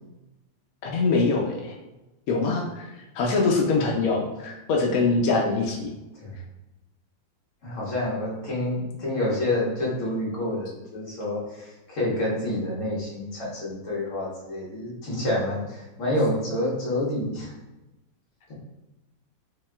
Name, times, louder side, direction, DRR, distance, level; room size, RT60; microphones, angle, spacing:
voice 1, 0.8-1.8 2.3-5.9, left 3 dB, 80° left, 0 dB, 0.8 m, -24 dB
voice 2, 7.6-17.5 18.5-18.6, left 1 dB, 45° left, -6 dB, 1.5 m, -28 dB
4.8 x 3.0 x 2.2 m, 1.0 s
omnidirectional pair, 2.1 m